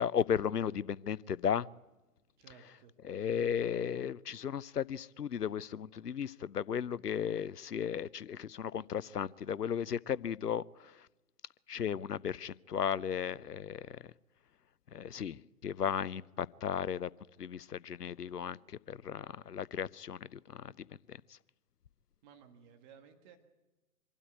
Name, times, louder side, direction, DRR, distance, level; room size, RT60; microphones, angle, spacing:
voice 1, 0.0-1.7 3.0-11.1 11.7-14.0 14.9-17.1 17.4-21.4, left 8 dB, 85° left, 0.6 m, -35 dB
voice 2, 2.4-2.9 22.2-23.4, right 7 dB, 30° right, 1.8 m, -57 dB
24.5 x 12.5 x 9.5 m
figure-of-eight pair, 120°, 46 cm